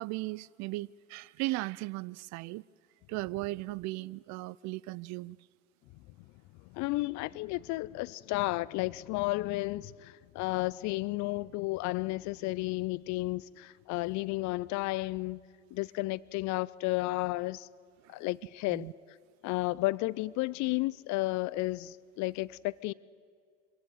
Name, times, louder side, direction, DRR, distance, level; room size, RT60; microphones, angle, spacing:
voice 1, 0.0-2.7 3.1-5.4 18.0-18.2 18.7-18.9, right 20 dB, 50° right, 0.5 m, -37 dB
voice 2, 6.7-15.4 15.7-17.7 18.1-18.8 19.4-22.9, left 20 dB, 50° left, 0.6 m, -32 dB
23.5 x 17.0 x 9.1 m
hypercardioid pair, 65°, 36 cm